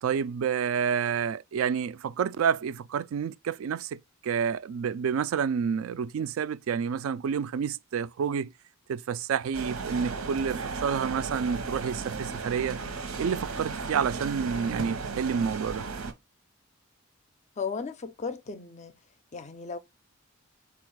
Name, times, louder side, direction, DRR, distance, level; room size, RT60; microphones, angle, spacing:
voice 1, 0.0-8.5 8.9-12.8 13.2-15.9, right 7 dB, 70° right, 0.3 m, -29 dB
sound 1, 9.5-16.1, right 4 dB, 85° right, 0.9 m, -35 dB
voice 2, 17.6-18.9 19.3-19.8, left 5 dB, 30° left, 0.4 m, -35 dB
4.3 x 2.4 x 4.6 m
head